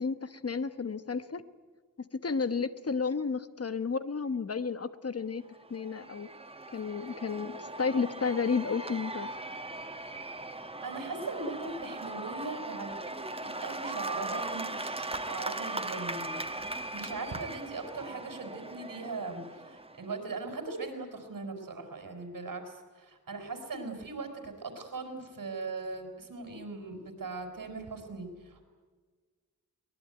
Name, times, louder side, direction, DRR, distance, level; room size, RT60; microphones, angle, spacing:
voice 1, 0.0-1.4 2.0-5.4 5.7-6.3 6.7-9.3, left 5 dB, 45° left, 12 dB, 1.1 m, -32 dB
Cheering / Applause / Crowd, 5.5-20.2, right 2 dB, 15° right, 1.3 m, -39 dB
voice 2, 10.8-28.6, right 3 dB, 85° right, 5 dB, 5.1 m, -40 dB
23.5 x 21.0 x 9.3 m, 1.5 s
wide cardioid pair, 120°, 32 cm